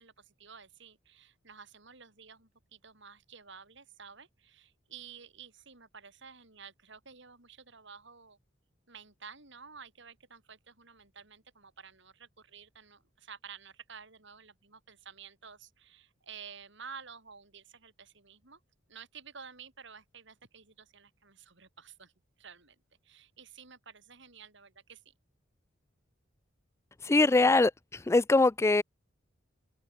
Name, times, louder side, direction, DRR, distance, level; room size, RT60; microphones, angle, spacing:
voice 1, 0.0-8.4 8.9-18.6 18.9-22.1 22.4-22.8 23.0-25.1, right 6 dB, 65° right, 5.3 m, -51 dB
voice 2, 27.0-28.8, left 2 dB, 15° left, 0.3 m, -23 dB
open air
head